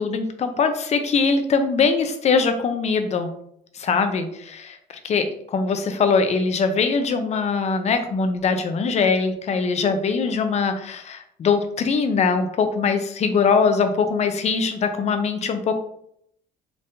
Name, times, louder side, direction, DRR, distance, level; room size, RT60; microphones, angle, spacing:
voice 1, 0.0-3.3 3.7-4.8 5.0-15.8, left 5 dB, 40° left, 8 dB, 0.6 m, -22 dB
4.4 x 3.4 x 2.6 m, 0.70 s
cardioid pair, 110°, 17 cm